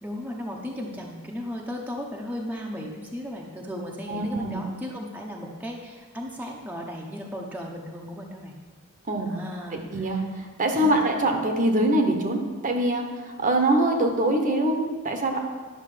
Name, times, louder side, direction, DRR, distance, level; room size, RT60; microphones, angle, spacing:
voice 1, 0.0-8.6 9.2-10.3 10.7-11.0, equal, 5° right, -1 dB, 0.9 m, -36 dB
voice 2, 4.1-4.6 9.1-9.3 9.7-13.1 13.4-15.4, right 1 dB, 35° right, 4 dB, 1.1 m, -24 dB
10.5 x 6.5 x 5.0 m, 1.4 s
head